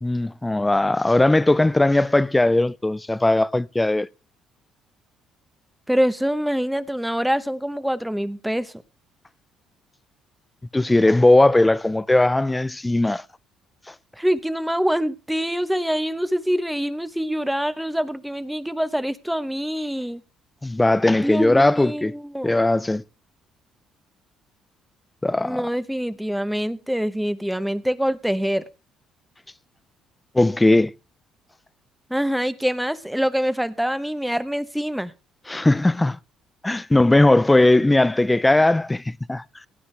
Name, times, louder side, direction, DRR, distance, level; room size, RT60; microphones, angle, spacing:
voice 1, 0.0-4.1 10.7-13.2 13.9-14.0 20.6-22.1 22.4-23.0 25.2-25.7 30.3-30.9 35.5-36.2 36.6-39.4, left 2 dB, 15° left, 0.5 m, -18 dB
voice 2, 5.9-8.7 14.2-20.2 21.2-22.6 25.4-28.6 32.1-35.1, equal, 5° right, 1.0 m, -25 dB
17.5 x 9.5 x 3.4 m
supercardioid pair, 85°, 0 cm